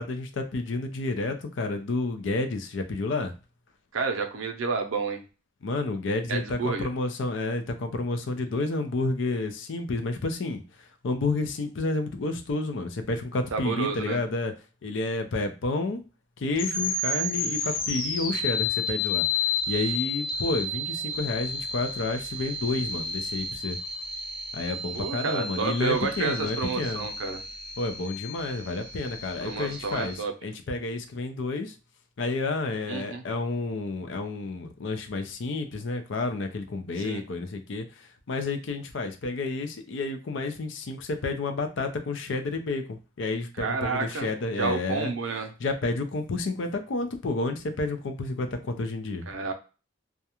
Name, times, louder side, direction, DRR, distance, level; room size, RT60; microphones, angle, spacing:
voice 1, 0.0-3.3 5.6-10.6 11.0-14.5 14.8-16.0 16.4-19.2 19.7-23.8 24.5-27.1 27.8-30.2 30.4-31.7 32.2-45.1 45.6-49.3, left 3 dB, 65° left, 7 dB, 0.5 m, -30 dB
voice 2, 3.9-5.2 6.3-6.9 13.5-14.2 24.9-27.4 29.4-30.3 32.9-33.2 37.0-37.2 43.6-44.3 44.6-45.5 49.3-49.5, right 4 dB, 85° right, 5 dB, 0.5 m, -30 dB
sound 1, 16.6-30.2, left 3 dB, 45° left, 0.9 m, -32 dB
2.3 x 2.1 x 2.9 m, 0.32 s
head